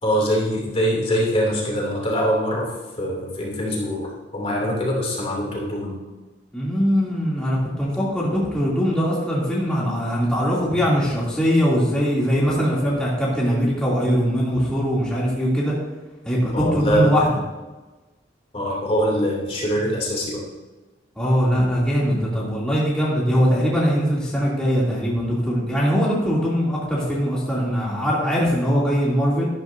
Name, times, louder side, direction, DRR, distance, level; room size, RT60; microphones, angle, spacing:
voice 1, 0.0-6.0 16.5-17.1 18.5-20.4 21.2-21.3, equal, 35° left, -3 dB, 2.8 m, -23 dB
voice 2, 6.5-15.7 16.2-17.3 21.2-29.5, equal, 5° left, -7 dB, 2.8 m, -21 dB
12.5 x 12.5 x 2.7 m, 1.2 s
head